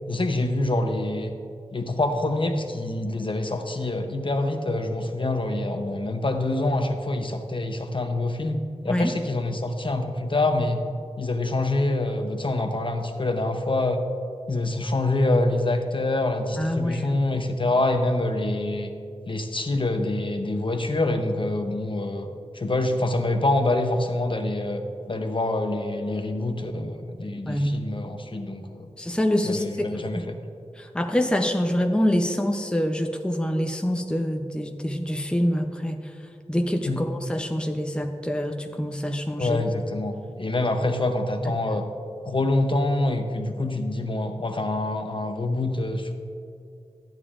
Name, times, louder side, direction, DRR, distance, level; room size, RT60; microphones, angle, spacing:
voice 1, 0.1-1.3 1.7-10.8 11.2-14.0 14.5-18.9 19.3-22.3 22.5-28.9 29.4-30.4 36.9-37.0 39.4-41.9 42.2-46.1, left 2 dB, 45° left, 5 dB, 0.7 m, -26 dB
voice 2, 16.6-17.2 27.5-27.8 29.0-30.2 30.8-36.0 36.5-39.6, equal, 10° left, 4 dB, 0.6 m, -26 dB
13.0 x 9.1 x 2.5 m, 2.5 s
wide cardioid pair, 80°, 12 cm